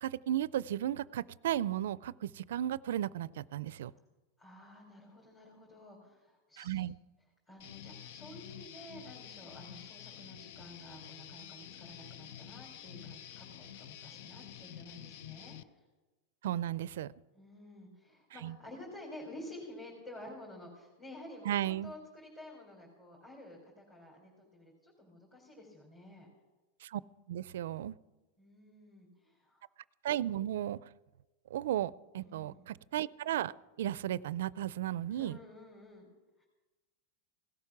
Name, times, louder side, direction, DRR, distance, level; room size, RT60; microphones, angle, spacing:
voice 1, 0.0-3.9 6.6-7.0 16.4-17.1 18.4-18.5 21.5-21.9 26.8-27.0 27.3-28.0 30.0-30.8 31.5-33.5 33.8-35.4, right 12 dB, 80° right, 20 dB, 0.4 m, -34 dB
voice 2, 4.4-6.8 7.5-15.8 17.3-26.3 28.4-29.6 32.2-32.7 35.1-36.1 36.4-36.5, left 1 dB, 20° left, -2 dB, 3.5 m, -51 dB
Guitar, 7.6-15.6, left 10 dB, 65° left, 0.6 m, -49 dB
17.0 x 12.5 x 6.0 m, 1.2 s
supercardioid pair, 145°, 0 cm